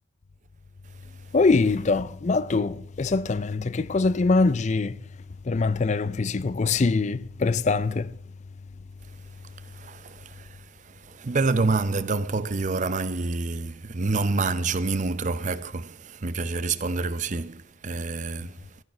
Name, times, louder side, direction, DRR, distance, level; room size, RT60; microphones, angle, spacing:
voice 1, 1.3-5.0 5.5-8.1, left 3 dB, 35° left, 0.4 m, -23 dB
voice 2, 9.6-10.6 10.9-18.6, right 3 dB, 40° right, 0.6 m, -27 dB
14.5 x 12.0 x 6.1 m
head